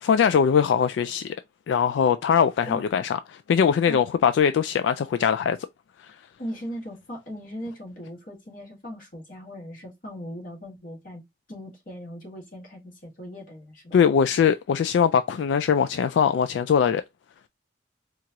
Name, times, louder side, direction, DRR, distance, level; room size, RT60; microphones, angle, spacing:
voice 1, 0.0-1.4 1.7-5.6 6.0-6.2 13.9-17.0, left 7 dB, 80° left, 0.3 m, -21 dB
voice 2, 6.4-11.2 11.5-14.0, equal, 50° left, 1.6 m, -38 dB
4.4 x 2.5 x 2.8 m
head